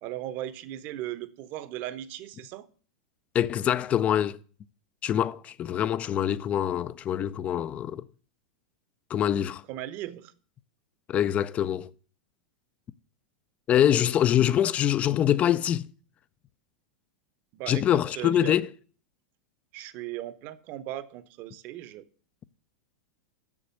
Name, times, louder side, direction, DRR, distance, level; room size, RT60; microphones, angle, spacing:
voice 1, 0.0-2.7 9.7-10.3 17.5-17.8 18.2-18.6 19.7-22.0, right 13 dB, 50° right, 0.9 m, -37 dB
voice 2, 3.3-4.4 5.0-8.1 9.1-9.6 11.1-11.9 13.7-15.9 17.7-18.7, left 10 dB, 30° left, 0.5 m, -24 dB
7.2 x 6.6 x 7.9 m
hypercardioid pair, 110°, 4 cm